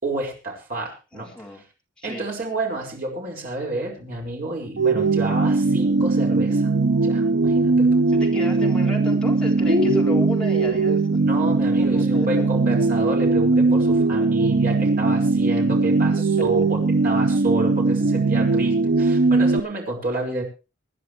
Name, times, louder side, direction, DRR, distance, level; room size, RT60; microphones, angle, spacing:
voice 1, 0.0-1.3 2.0-6.7 7.0-8.0 9.7-10.3 11.2-20.4, right 1 dB, 45° right, 0 dB, 5.3 m, -29 dB
voice 2, 1.1-1.6 2.0-2.2 8.1-11.2 11.8-12.5 14.2-14.3, left 1 dB, 5° left, -3 dB, 3.9 m, -34 dB
sound 1, 4.8-19.6, right 3 dB, 65° right, 0.6 m, -20 dB
25.0 x 10.0 x 3.3 m, 0.31 s
head